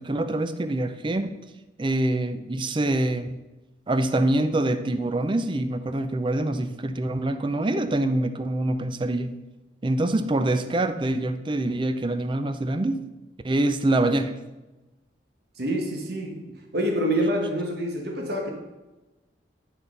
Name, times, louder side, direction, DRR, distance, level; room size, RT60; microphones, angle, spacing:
voice 1, 0.0-1.4 1.8-3.4 3.9-9.3 9.8-13.0 13.4-14.4, right 1 dB, 25° right, 10 dB, 0.5 m, -25 dB
voice 2, 15.6-18.5, equal, 60° right, 2 dB, 1.3 m, -27 dB
10.0 x 4.2 x 5.3 m, 1.1 s
head